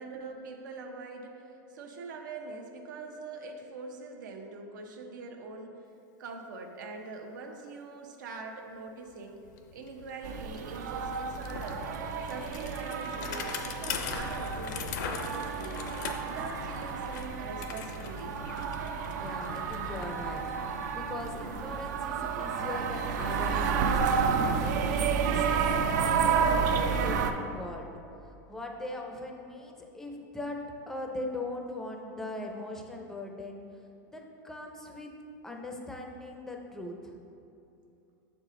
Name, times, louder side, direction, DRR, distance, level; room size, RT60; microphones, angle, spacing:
voice 1, 0.0-5.7 6.2-9.4 9.7-11.8 12.3-15.8 16.2-18.4, right 3 dB, 90° right, 2 dB, 0.8 m, -43 dB
Bicycle, 9.1-9.2 9.4-22.4, left 6 dB, 75° left, 0.6 m, -41 dB
sound 1, 10.2-27.3, right 6 dB, 70° right, 0.5 m, -31 dB
voice 2, 19.1-24.0 24.4-27.9 28.5-30.6 30.9-33.6 34.1-35.1 35.4-37.2, left 2 dB, 5° left, 2 dB, 0.4 m, -40 dB
6.6 x 4.9 x 3.7 m, 2.8 s
supercardioid pair, 165°, 10 cm